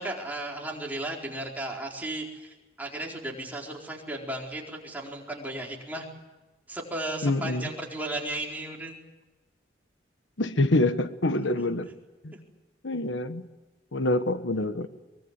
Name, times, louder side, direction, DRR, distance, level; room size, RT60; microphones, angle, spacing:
voice 1, 0.0-6.1 6.7-9.0 11.5-11.7 12.3-12.4, right 1 dB, 10° right, -1 dB, 4.3 m, -35 dB
voice 2, 7.2-7.7 10.4-11.9 12.2-12.3 12.8-13.5 13.9-14.9, left 2 dB, 85° left, 11 dB, 1.2 m, -26 dB
24.0 x 22.5 x 8.1 m, 1.2 s
head